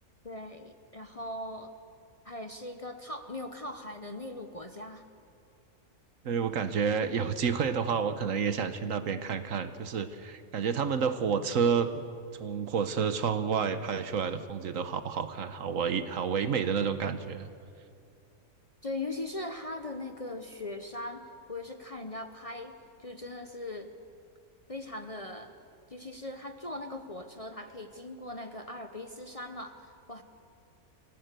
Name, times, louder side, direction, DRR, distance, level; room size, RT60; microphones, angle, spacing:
voice 1, 0.2-1.7 2.2-5.0 18.8-22.7 23.0-23.9 24.7-25.5 25.9-30.2, left 2 dB, 30° left, 6 dB, 0.8 m, -40 dB
voice 2, 6.2-11.9 12.4-17.5, right 6 dB, 65° right, 11 dB, 1.3 m, -29 dB
25.5 x 17.0 x 6.7 m, 2.5 s
omnidirectional pair, 1.5 m